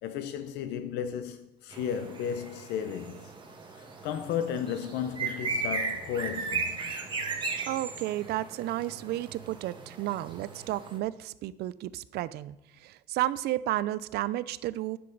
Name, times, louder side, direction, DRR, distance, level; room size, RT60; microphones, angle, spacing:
voice 1, 0.0-3.3 3.7-7.0, left 8 dB, 85° left, 0.6 m, -34 dB
sound 1, 1.7-11.0, right 4 dB, 25° right, 1.6 m, -36 dB
voice 2, 7.7-12.6 12.8-15.0, right 15 dB, 75° right, 0.4 m, -32 dB
11.0 x 7.8 x 3.9 m
cardioid pair, 110°, 17 cm